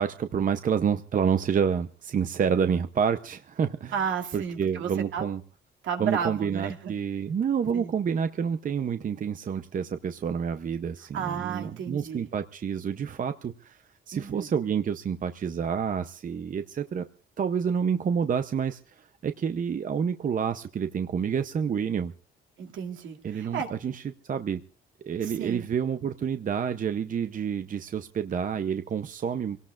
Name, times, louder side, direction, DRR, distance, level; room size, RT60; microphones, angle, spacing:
voice 1, 0.0-3.9 4.3-5.4 6.0-17.1 17.4-22.1 23.2-24.6 25.1-29.6, right 7 dB, 40° right, 9 dB, 0.7 m, -28 dB
voice 2, 3.9-5.3 5.8-6.9 7.7-8.0 11.1-12.3 14.1-14.5 22.6-23.7 25.2-25.6, right 7 dB, 75° right, 3 dB, 2.4 m, -33 dB
25.5 x 18.0 x 2.5 m, 0.40 s
cardioid pair, 90°, 20 cm